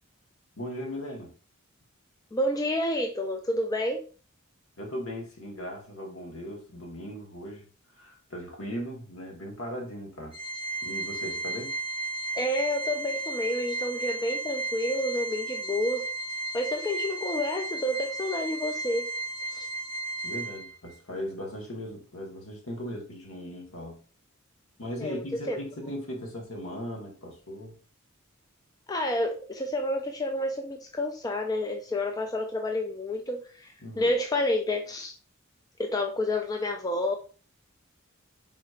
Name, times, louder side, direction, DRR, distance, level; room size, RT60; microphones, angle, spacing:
voice 1, 0.6-1.3 4.8-7.7 8.0-10.4 10.8-11.8 20.2-24.0 24.8-27.8 33.8-34.1, equal, 70° left, 1.3 m, -38 dB
voice 2, 2.3-4.0 12.4-16.1 16.5-19.1 19.5-19.7 25.0-25.6 28.9-35.1 35.8-37.1, left 1 dB, 15° left, 0.3 m, -29 dB
Organ, 10.3-20.9, right 2 dB, 25° right, 1.3 m, -34 dB
4.3 x 4.0 x 2.4 m
head